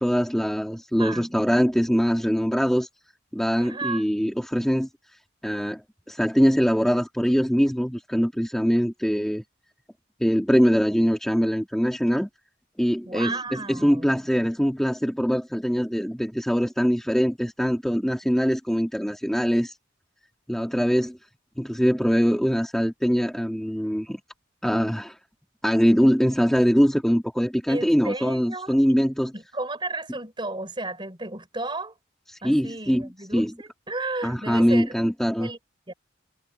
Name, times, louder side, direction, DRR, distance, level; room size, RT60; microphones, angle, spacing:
voice 1, 0.0-2.9 3.3-4.9 5.4-5.8 6.1-9.4 10.2-12.3 12.8-19.7 20.5-21.2 21.6-24.2 24.6-25.1 25.6-29.3 32.3-33.0 33.3-33.5 34.2-35.5, equal, ahead, 2.6 m, -22 dB
voice 2, 1.0-1.4 3.6-4.1 13.0-14.2 27.7-29.0 29.3-31.9 32.4-35.0 35.4-35.6 35.9-36.0, right 2 dB, 25° right, 4.6 m, -33 dB
head